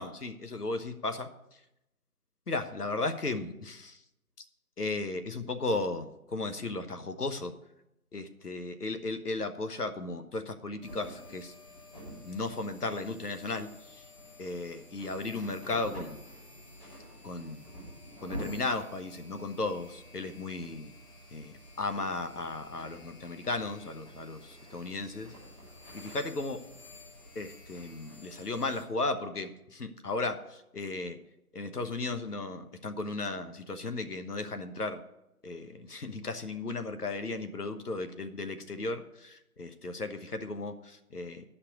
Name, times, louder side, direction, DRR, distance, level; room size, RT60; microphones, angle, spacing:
voice 1, 0.0-1.6 2.5-4.0 4.4-4.5 4.8-7.5 8.1-11.5 12.2-14.0 14.4-16.2 17.2-17.6 18.2-20.9 21.3-25.3 25.9-26.6 27.3-31.2 31.5-35.0 35.4-41.4, left 3 dB, 80° left, 9 dB, 1.2 m, -35 dB
sound 1, 10.8-28.8, equal, 5° left, 3.5 m, -48 dB
9.6 x 5.8 x 8.3 m, 0.88 s
figure-of-eight pair, 170°, 46 cm